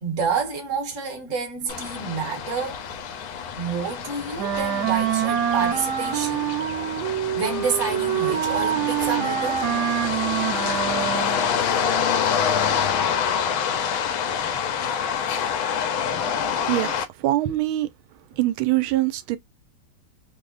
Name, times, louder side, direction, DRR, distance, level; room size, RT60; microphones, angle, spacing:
voice 1, 0.0-2.8 3.6-6.5 7.3-9.6, right 5 dB, 45° right, 1.3 m, -28 dB
sound 1, 1.7-17.1, left 7 dB, 80° left, 1.5 m, -27 dB
Wind instrument woodwind instrument, 4.4-11.5, right 10 dB, 65° right, 1.1 m, -25 dB
voice 2, 17.2-17.9 18.3-19.4, right 16 dB, 85° right, 1.4 m, -23 dB
3.6 x 2.0 x 3.7 m
omnidirectional pair, 2.2 m